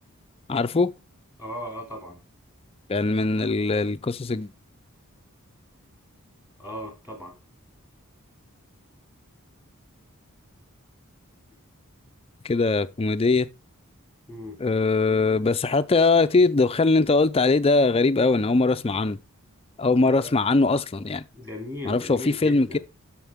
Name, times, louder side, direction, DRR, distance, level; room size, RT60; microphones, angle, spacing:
voice 1, 0.5-0.9 2.9-4.5 12.4-13.5 14.6-19.2 19.8-21.2 21.8-22.8, left 3 dB, 25° left, 0.4 m, -21 dB
voice 2, 1.4-2.2 6.6-7.3 14.3-14.6 20.0-20.3 21.3-22.8, left 1 dB, 10° right, 2.8 m, -37 dB
12.0 x 4.4 x 3.5 m
head